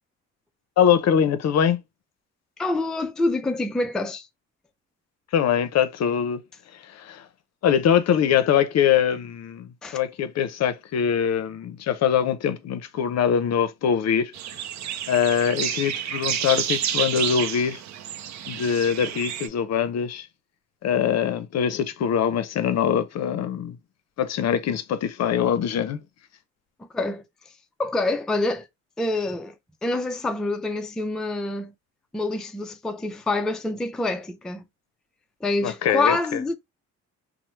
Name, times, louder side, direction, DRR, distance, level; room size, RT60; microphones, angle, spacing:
voice 1, 0.8-1.8 5.3-6.4 6.8-7.3 7.6-14.3 15.1-17.8 18.5-20.3 20.8-23.8 24.2-26.0 35.6-36.4, left 8 dB, 60° left, 0.6 m, -23 dB
voice 2, 2.6-4.3 9.8-10.0 26.9-27.2 27.8-28.7 29.0-29.5 29.8-31.7 32.1-34.6 35.4-36.6, left 2 dB, ahead, 0.3 m, -26 dB
sound 1, 14.3-19.5, right 9 dB, 65° right, 0.5 m, -29 dB
3.0 x 2.0 x 3.0 m
cardioid pair, 90°, 30 cm